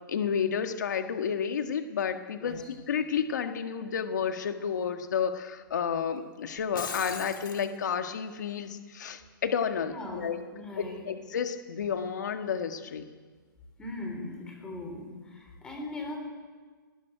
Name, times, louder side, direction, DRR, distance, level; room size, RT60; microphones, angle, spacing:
voice 1, 0.1-10.4 10.8-13.1, left 7 dB, 55° left, 6 dB, 1.8 m, -31 dB
Shatter, 6.6-7.7, left 5 dB, 70° left, 4.2 m, -39 dB
voice 2, 9.9-11.1 13.8-16.2, left 2 dB, 5° left, 2 dB, 3.7 m, -40 dB
19.5 x 19.0 x 9.2 m, 1.5 s
hypercardioid pair, 170°, 11 cm